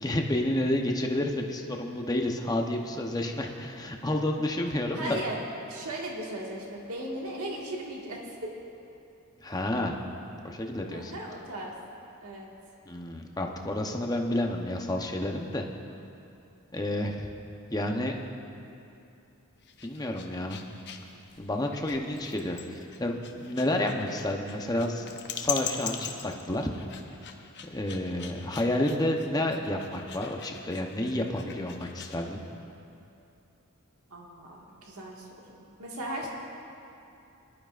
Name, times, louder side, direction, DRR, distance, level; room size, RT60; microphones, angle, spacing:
voice 1, 0.0-5.2 9.4-10.0 10.4-11.1 12.9-15.6 16.7-17.3 17.7-18.2 19.8-20.6 21.4-25.1 25.3-26.7 27.6-32.4, left 1 dB, 15° left, 2 dB, 0.8 m, -30 dB
voice 2, 4.9-5.4 5.7-8.2 10.9-11.7 12.2-12.5 34.1-35.4 35.8-36.3, right 1 dB, 80° right, -2 dB, 1.9 m, -37 dB
sound 1, 19.6-32.2, left 7 dB, 55° left, 0.8 m, -41 dB
22.0 x 11.5 x 2.5 m, 2.8 s
head